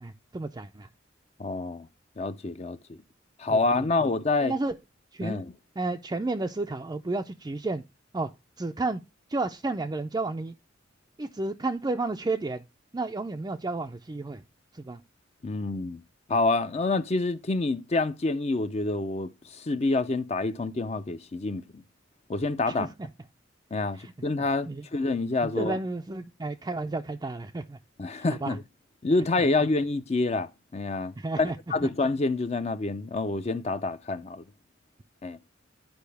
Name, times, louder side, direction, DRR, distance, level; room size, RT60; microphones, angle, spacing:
voice 1, 0.0-0.9 3.5-3.6 4.4-4.7 5.1-5.4 5.8-7.8 8.1-8.3 8.6-9.0 9.3-10.5 11.2-12.6 12.9-14.4 14.7-15.0 22.7-22.9 24.0-24.1 24.7-24.8 25.4-27.8 28.2-28.6 31.2-31.6, right 2 dB, 20° right, 0.4 m, -31 dB
voice 2, 1.4-1.9 2.2-3.0 3.4-4.5 5.2-5.5 15.4-16.0 16.3-21.8 22.3-22.9 23.7-25.8 28.0-28.6 29.0-34.4 35.2-35.4, left 3 dB, 35° left, 0.5 m, -27 dB
10.5 x 4.9 x 3.3 m
head